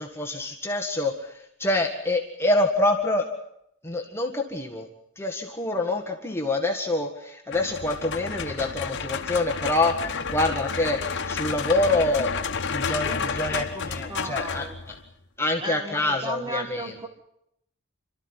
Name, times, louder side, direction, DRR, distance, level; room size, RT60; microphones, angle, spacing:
voice 1, 0.0-3.3 3.8-4.9 5.2-12.3 12.7-14.9 15.4-16.9, left 2 dB, 10° left, 2 dB, 1.7 m, -26 dB
sound 1, 7.5-15.1, left 5 dB, 60° left, 1.3 m, -31 dB
voice 2, 13.0-14.8 15.6-17.1, right 1 dB, 20° right, 4 dB, 3.1 m, -35 dB
27.0 x 13.5 x 9.9 m, 0.77 s
head